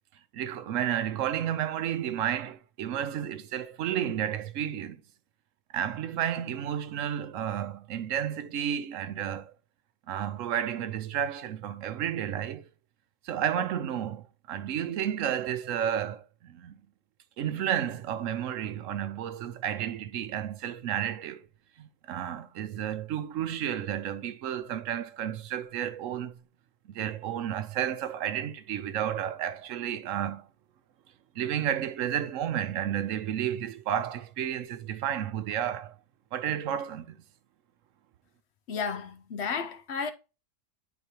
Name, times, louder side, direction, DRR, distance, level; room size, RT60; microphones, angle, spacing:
voice 1, 0.3-5.0 5.7-9.5 10.1-12.7 13.2-16.7 17.4-21.4 21.8-26.4 26.9-30.5 31.3-36.0 36.3-37.2, right 10 dB, 75° right, 1.0 m, -32 dB
voice 2, 38.7-40.1, left 5 dB, 65° left, 0.9 m, -32 dB
9.6 x 4.0 x 2.8 m
omnidirectional pair, 1.3 m